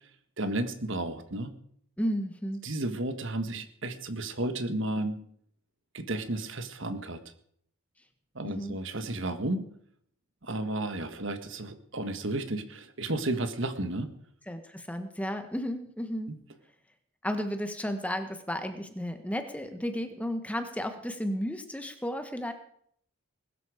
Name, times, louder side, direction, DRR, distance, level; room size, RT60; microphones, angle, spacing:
voice 1, 0.4-1.5 2.6-5.2 5.9-7.2 8.3-9.6 10.4-14.1 16.3-16.4, right 2 dB, 55° right, 9 dB, 1.5 m, -32 dB
voice 2, 2.0-2.6 8.4-8.8 14.5-16.4 17.2-22.5, equal, 5° left, 7 dB, 1.2 m, -33 dB
21.0 x 12.5 x 5.0 m, 0.66 s
head